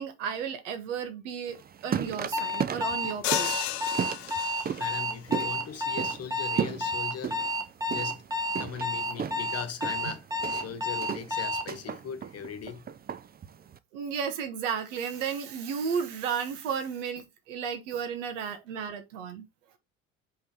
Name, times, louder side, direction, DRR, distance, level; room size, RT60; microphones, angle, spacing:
voice 1, 0.0-3.7 13.9-19.5, right 7 dB, 75° right, 1.4 m, -33 dB
sound 1, 1.5-13.8, right 8 dB, 25° right, 0.6 m, -36 dB
Alarm, 2.3-11.7, left 1 dB, 10° right, 1.2 m, -31 dB
sound 2, 3.2-5.0, left 15 dB, 75° left, 0.6 m, -33 dB
voice 2, 4.4-7.4 7.9-12.9, left 7 dB, 40° left, 1.3 m, -40 dB
5.4 x 3.9 x 5.2 m
hypercardioid pair, 60°, 38 cm